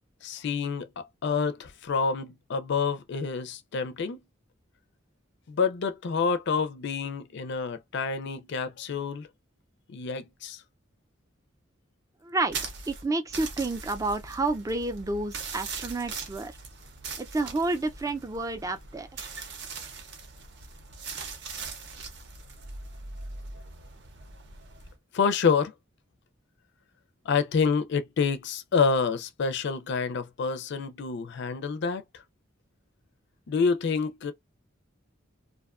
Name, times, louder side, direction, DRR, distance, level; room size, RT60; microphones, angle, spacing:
voice 1, 0.2-4.2 5.5-9.3 9.9-10.6 25.1-25.7 27.3-32.0 33.5-34.3, left 5 dB, 60° left, 0.4 m, -28 dB
voice 2, 12.2-12.6 12.9-16.5 17.2-19.3, right 2 dB, 15° right, 0.3 m, -30 dB
sound 1, 12.5-24.9, right 4 dB, 60° right, 0.6 m, -40 dB
2.5 x 2.2 x 2.4 m
head